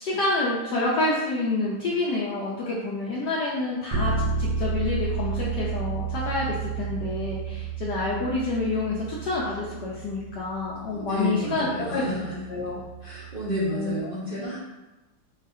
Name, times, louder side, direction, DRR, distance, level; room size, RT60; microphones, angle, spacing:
voice 1, 0.0-11.7 11.9-12.0 12.5-12.8 13.7-14.5, left 2 dB, 65° left, -5 dB, 1.1 m, -28 dB
Bass guitar, 3.9-13.7, right 5 dB, 75° right, 1.3 m, -32 dB
voice 2, 10.9-12.4 13.0-14.6, equal, 40° right, -10 dB, 0.8 m, -30 dB
4.0 x 4.0 x 2.6 m, 1.1 s
omnidirectional pair, 2.2 m